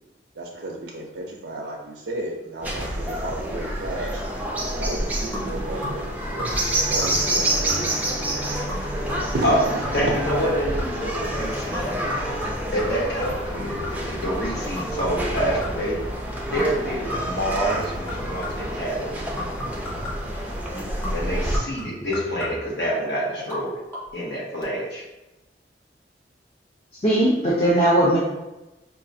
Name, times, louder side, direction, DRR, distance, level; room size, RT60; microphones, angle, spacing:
voice 1, 0.4-4.2 4.8-8.6 9.0-10.1 13.5-13.7, right 2 dB, 80° right, -2 dB, 0.5 m, -33 dB
sound 1, 2.6-21.6, right 1 dB, 10° right, 0.4 m, -28 dB
sound 2, 5.3-6.1 6.4-6.8 7.0-7.4 7.7-8.1 8.7-11.1 11.7-14.2 14.8-16.0 16.6-16.8 17.1-18.8 19.4-20.4 21.0-22.8 23.4-23.6 23.9-24.0, equal, 15° left, 1.1 m, -35 dB
voice 2, 9.9-12.0 12.7-16.0 16.4-19.2 21.1-23.7 24.1-25.0, equal, 65° left, -5 dB, 1.2 m, -27 dB
voice 3, 27.0-28.2, right 1 dB, 35° left, -7 dB, 0.7 m, -18 dB
4.7 x 2.4 x 2.6 m, 1.0 s
head